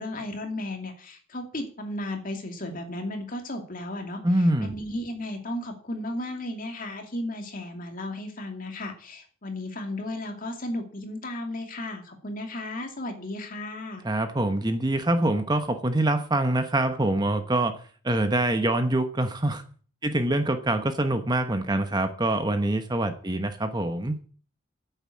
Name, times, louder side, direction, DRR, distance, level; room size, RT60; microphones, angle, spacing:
voice 1, 0.0-4.2 4.6-14.1, left 1 dB, 45° left, 4 dB, 2.5 m, -34 dB
voice 2, 4.2-4.7 14.0-17.8 18.0-19.6 20.0-24.2, right 1 dB, 20° right, 8 dB, 1.1 m, -25 dB
9.6 x 8.1 x 8.5 m, 0.42 s
head